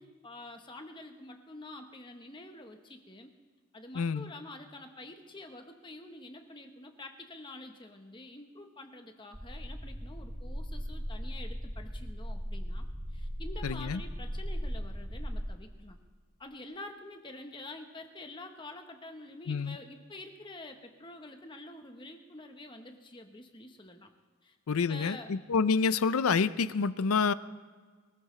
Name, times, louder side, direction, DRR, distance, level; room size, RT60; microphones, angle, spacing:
voice 1, 0.0-3.3 3.7-12.9 13.1-16.0 16.4-24.1 24.4-24.6 24.9-25.3, left 2 dB, 20° left, 5 dB, 1.0 m, -47 dB
voice 2, 3.9-4.3 13.6-14.0 19.5-19.8 24.7-27.3, left 5 dB, 85° left, 15 dB, 0.5 m, -28 dB
sound 1, 9.3-15.4, equal, 10° right, 1.3 m, -38 dB
23.0 x 14.5 x 3.2 m, 1.5 s
head